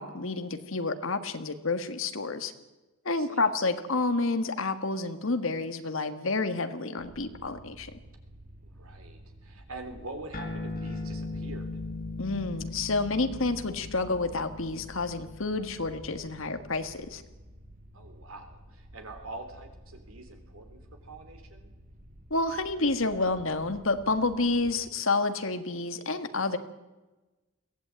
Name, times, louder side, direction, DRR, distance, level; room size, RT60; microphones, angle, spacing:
voice 1, 0.0-2.5 3.0-7.9 12.2-17.2 22.3-26.6, left 3 dB, 65° left, 10 dB, 1.6 m, -29 dB
voice 2, 3.2-3.5 8.6-11.7 17.9-21.7, right 2 dB, 75° right, 6 dB, 3.6 m, -45 dB
sound 1, 7.0-24.9, equal, 35° right, 1.7 m, -51 dB
sound 2, 10.3-17.2, left 2 dB, 45° left, 2.5 m, -39 dB
22.0 x 16.0 x 8.9 m, 1.1 s
head